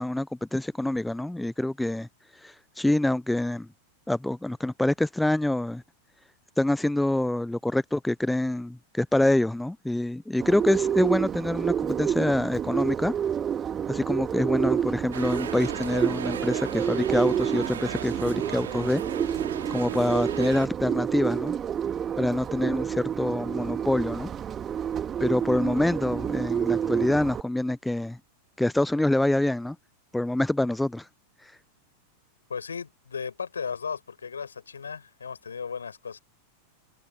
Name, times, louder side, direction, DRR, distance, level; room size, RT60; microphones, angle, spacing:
voice 1, 0.0-3.7 4.1-5.8 6.6-13.1 13.9-19.0 19.7-21.6 22.2-24.3 25.2-28.2 28.6-29.8 30.1-31.1 31.4-31.5, left 1 dB, 5° left, 0.4 m, -26 dB
Bird, 10.4-27.4, right 8 dB, 25° right, 2.6 m, -29 dB
sound 1, 15.1-20.7, right 9 dB, 65° right, 2.4 m, -37 dB
voice 2, 32.5-36.2, left 6 dB, 70° left, 5.4 m, -35 dB
figure-of-eight pair, 90°, 0 cm